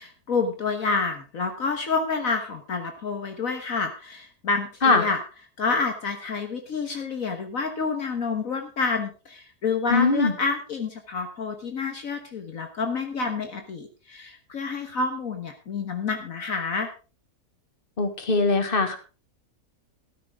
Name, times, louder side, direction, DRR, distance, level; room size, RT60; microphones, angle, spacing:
voice 1, 0.0-5.2 5.6-16.9, left 4 dB, 60° left, 5 dB, 1.7 m, -28 dB
voice 2, 9.9-10.3 18.0-19.0, left 3 dB, 35° left, 7 dB, 2.0 m, -21 dB
14.5 x 13.0 x 3.6 m, 0.34 s
omnidirectional pair, 1.6 m